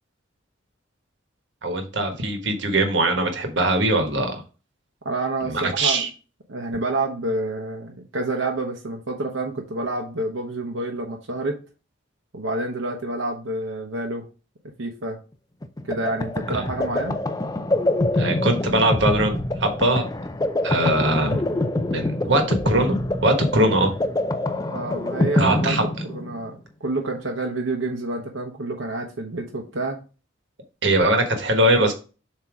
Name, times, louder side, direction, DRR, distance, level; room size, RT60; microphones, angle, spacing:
voice 1, 1.6-4.4 5.4-6.1 16.5-16.6 18.1-20.1 20.6-21.6 21.9-23.0 23.2-23.9 25.4-25.8 30.8-31.9, right 1 dB, 65° right, 4 dB, 1.3 m, -21 dB
voice 2, 5.0-6.0 6.5-11.6 12.3-14.3 14.8-15.2 15.8-17.2 24.7-30.0, right 2 dB, 85° right, 1 dB, 1.0 m, -28 dB
sound 1, 15.6-26.5, left 1 dB, 20° left, 0.5 m, -25 dB
7.4 x 2.9 x 4.8 m, 0.34 s
head